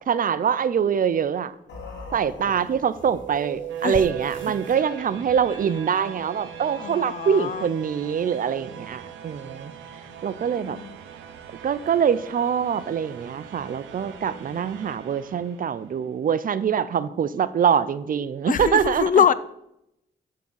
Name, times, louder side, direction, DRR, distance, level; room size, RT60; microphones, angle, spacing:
voice 1, 0.1-1.5 2.1-9.7 10.2-10.8 11.6-19.1, right 7 dB, 45° right, 0.5 m, -24 dB
sound 1, 1.7-5.8, left 2 dB, 70° left, 1.8 m, -43 dB
sound 2, 3.0-16.0, right 9 dB, 90° right, 0.7 m, -40 dB
voice 2, 6.8-7.7 10.5-11.0 13.9-14.7 18.5-19.3, left 8 dB, 45° left, 0.5 m, -25 dB
6.7 x 3.8 x 6.2 m
supercardioid pair, 50°, 19 cm